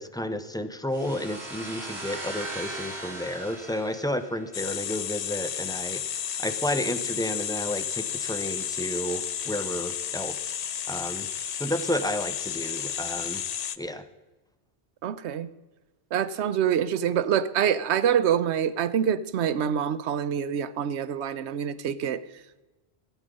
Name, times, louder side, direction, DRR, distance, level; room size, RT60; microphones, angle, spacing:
voice 1, 0.0-6.0 6.4-10.5 10.9-11.3 11.5-13.4 13.8-14.0, left 1 dB, 5° left, 9 dB, 0.5 m, -31 dB
sound 1, 0.9-4.6, right 1 dB, 40° right, 3.1 m, -38 dB
sound 2, 4.5-13.8, left 9 dB, 55° left, 0.4 m, -32 dB
voice 2, 15.0-15.5 16.1-22.2, right 9 dB, 85° right, 14 dB, 0.9 m, -26 dB
15.5 x 8.4 x 5.2 m, 1.1 s
omnidirectional pair, 1.1 m